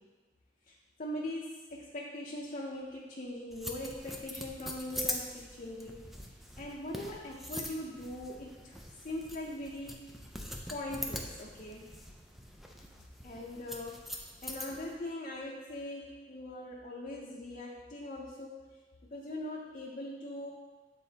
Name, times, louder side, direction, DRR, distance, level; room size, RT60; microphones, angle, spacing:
voice 1, 1.0-6.0 6.6-8.8 9.0-10.1 10.7-11.9 13.2-18.7 19.0-20.5, left 1 dB, 40° left, -4 dB, 0.6 m, -41 dB
sound 1, 3.5-14.9, equal, ahead, 0.4 m, -43 dB
8.4 x 4.0 x 2.8 m, 1.3 s
head